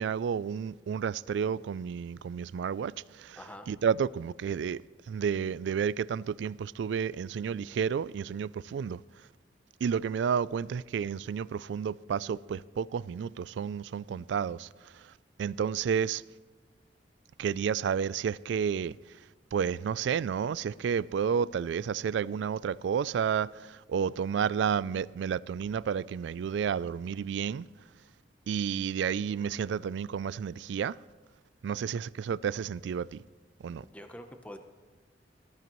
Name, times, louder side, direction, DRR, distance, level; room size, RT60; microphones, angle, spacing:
voice 1, 0.0-3.4 3.7-4.8 5.1-9.0 9.8-15.1 15.4-16.2 17.4-19.2 19.5-27.7 28.5-31.0 31.6-33.2 33.6-33.9, right 7 dB, 75° right, 0.3 m, -31 dB
voice 2, 3.4-3.7 33.8-34.6, equal, 10° left, 0.8 m, -45 dB
19.5 x 13.5 x 3.1 m
head